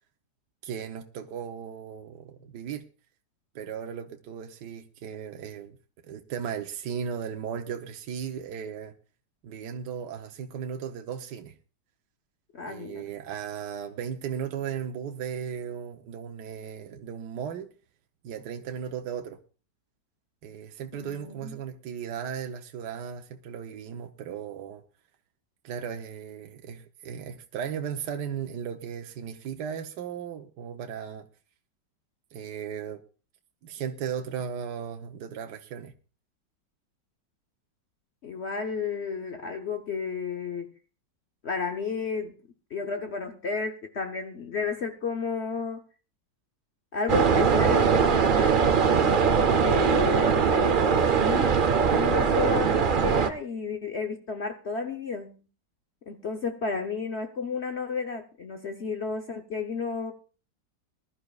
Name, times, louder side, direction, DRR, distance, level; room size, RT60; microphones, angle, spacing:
voice 1, 0.6-2.8 3.5-5.8 6.0-8.9 9.4-11.5 12.7-17.7 18.2-19.4 20.4-24.8 25.6-31.3 32.3-33.0 33.6-35.9, right 8 dB, 70° right, 1.4 m, -36 dB
voice 2, 12.5-13.1 20.9-21.6 38.2-40.7 41.4-42.4 42.7-45.8 46.9-48.6 49.6-51.6 51.9-55.4 56.1-60.1, left 5 dB, 50° left, 0.9 m, -32 dB
sound 1, 47.1-53.3, right 6 dB, 55° right, 0.5 m, -21 dB
21.0 x 12.0 x 2.4 m
omnidirectional pair, 1.9 m